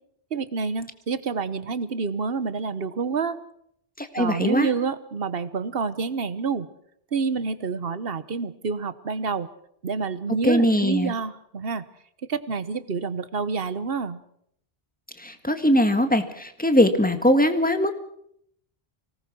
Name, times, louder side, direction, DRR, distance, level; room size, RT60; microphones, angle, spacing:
voice 1, 0.3-3.4 4.2-6.7 7.1-9.5 9.8-11.8 12.3-14.2, right 5 dB, 65° right, 14 dB, 1.2 m, -28 dB
voice 2, 4.0-4.7 10.4-11.1 15.2-17.9, left 1 dB, 10° left, 7 dB, 1.7 m, -21 dB
25.0 x 18.5 x 6.2 m, 0.70 s
omnidirectional pair, 1.1 m